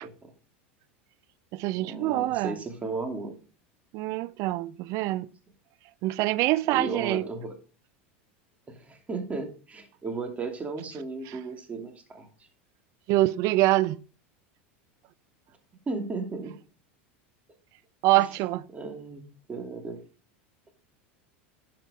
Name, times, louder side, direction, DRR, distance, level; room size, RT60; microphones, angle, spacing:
voice 1, 0.0-0.3 1.8-3.4 6.7-7.5 8.7-12.3 15.9-16.5 18.2-18.3 18.7-19.2 19.5-20.0, right 3 dB, 20° right, 2.7 m, -35 dB
voice 2, 1.5-2.5 3.9-5.3 6.0-7.3 13.1-14.0 18.0-18.6, right 17 dB, 55° right, 0.6 m, -25 dB
11.0 x 5.8 x 5.0 m
hypercardioid pair, 100°, 7 cm